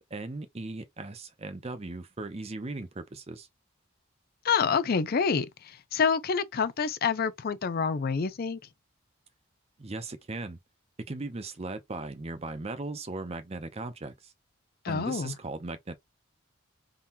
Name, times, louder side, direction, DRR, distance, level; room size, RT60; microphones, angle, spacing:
voice 1, 0.0-3.5 9.8-10.6 11.1-14.3 14.9-15.9, right 2 dB, 30° right, 0.6 m, -38 dB
voice 2, 4.4-8.6 14.8-15.4, left 6 dB, 45° left, 0.4 m, -27 dB
3.8 x 2.8 x 2.6 m
head